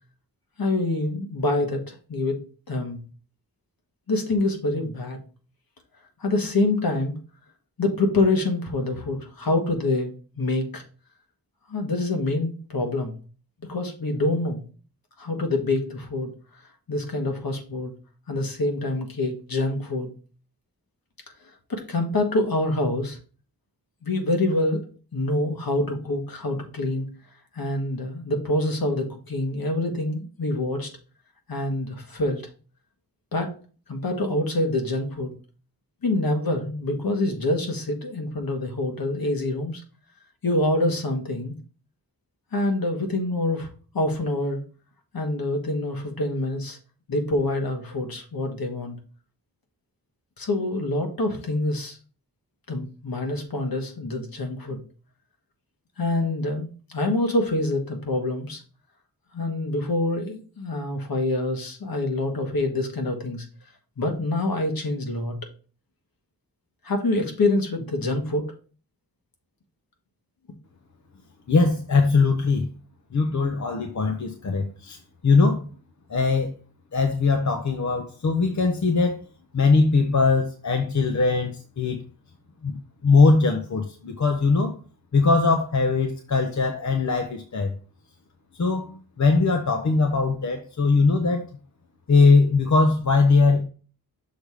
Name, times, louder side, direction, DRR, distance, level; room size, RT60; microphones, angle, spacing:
voice 1, 0.6-2.4 2.7-3.0 4.1-5.2 6.2-7.1 7.8-10.8 11.7-13.2 13.7-14.6 15.2-16.3 16.9-17.9 18.3-20.1 21.7-23.2 24.0-24.8 25.1-27.1 27.5-30.9 31.5-32.4 33.3-33.5 33.9-35.3 36.0-39.8 40.4-41.5 42.5-43.7 43.9-44.6 45.1-46.8 47.1-49.0 50.4-52.0 52.7-54.8 56.0-58.6 59.3-63.4 64.0-65.3 66.8-68.5, left 2 dB, 70° left, 4 dB, 1.5 m, -26 dB
voice 2, 71.5-72.7 73.1-75.0 75.2-75.7 76.1-76.5 76.9-79.2 79.5-82.0 82.6-82.8 83.0-84.7 85.1-87.7 88.6-91.4 92.1-93.6, left 4 dB, 50° left, 4 dB, 0.8 m, -20 dB
6.5 x 3.5 x 4.8 m, 0.38 s
wide cardioid pair, 105°, 38 cm